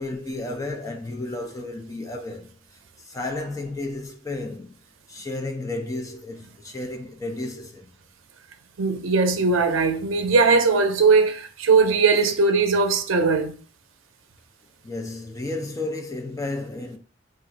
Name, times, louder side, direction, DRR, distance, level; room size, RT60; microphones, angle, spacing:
voice 1, 0.0-4.7 5.1-7.9 14.8-17.0, left 2 dB, 15° left, 0.5 m, -32 dB
voice 2, 8.8-13.5, right 4 dB, 90° right, 0.5 m, -19 dB
2.4 x 2.4 x 3.9 m
head